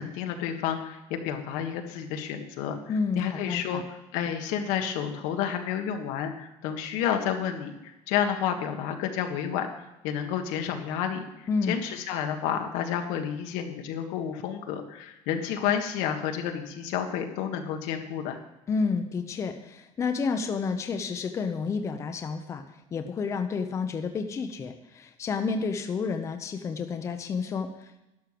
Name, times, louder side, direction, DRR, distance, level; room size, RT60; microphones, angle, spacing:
voice 1, 0.0-2.8 3.1-9.7 10.0-18.4, left 9 dB, 85° left, 5 dB, 1.6 m, -30 dB
voice 2, 2.9-3.8 11.5-11.8 18.7-22.6 22.9-28.0, left 5 dB, 25° left, 6 dB, 0.7 m, -30 dB
11.5 x 6.6 x 7.6 m, 0.96 s
cardioid pair, 170°, 13 cm